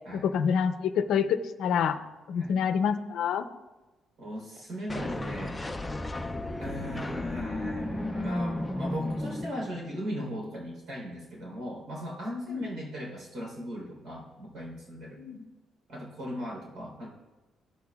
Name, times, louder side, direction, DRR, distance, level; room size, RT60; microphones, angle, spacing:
voice 1, 0.1-2.0 2.3-3.5 12.5-12.7 15.2-15.5, left 7 dB, 75° left, 9 dB, 0.6 m, -27 dB
voice 2, 4.2-5.6 6.6-15.2 15.9-17.1, equal, 75° right, -3 dB, 3.7 m, -38 dB
sound 1, 4.9-10.0, left 1 dB, 10° left, 0.5 m, -34 dB
15.0 x 8.6 x 2.4 m, 1.1 s
cardioid pair, 175°, 0 cm